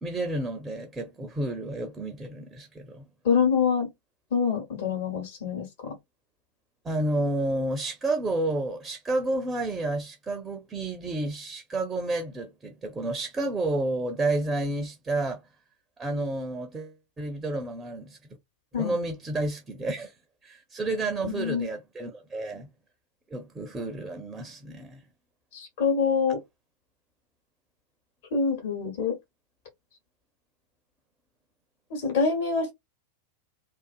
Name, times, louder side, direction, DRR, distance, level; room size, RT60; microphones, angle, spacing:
voice 1, 0.0-3.0 6.8-15.4 16.0-18.2 18.8-20.1 20.4-22.7 23.3-25.0, right 2 dB, 15° right, 0.5 m, -30 dB
voice 2, 3.2-3.9 4.3-5.9 18.7-18.9 21.2-21.7 25.5-26.4 28.3-29.2 31.9-32.7, left 5 dB, 55° left, 1.1 m, -25 dB
2.5 x 2.4 x 2.4 m
figure-of-eight pair, 90°, 0 cm